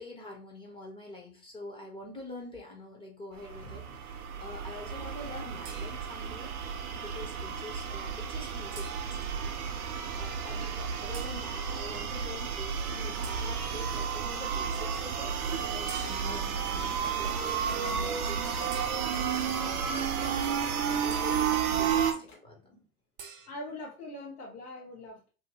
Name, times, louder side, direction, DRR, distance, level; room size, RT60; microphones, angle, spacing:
voice 1, 0.0-15.3 15.6-20.4 20.8-22.8, left 2 dB, 10° left, 0 dB, 0.7 m, -46 dB
sound 1, 3.4-22.1, right 7 dB, 70° right, 0.7 m, -32 dB
sound 2, 5.6-6.3 8.7-9.4 11.1-11.5 13.2-13.8 15.9-16.5 18.7-19.4 21.1-21.6 23.2-23.5, right 6 dB, 25° right, 0.6 m, -48 dB
sound 3, 16.6-22.3, left 3 dB, 40° left, 1.3 m, -49 dB
voice 2, 23.4-25.3, left 1 dB, 75° left, -3 dB, 1.1 m, -43 dB
2.8 x 2.8 x 2.8 m, 0.35 s
hypercardioid pair, 105°, 45 cm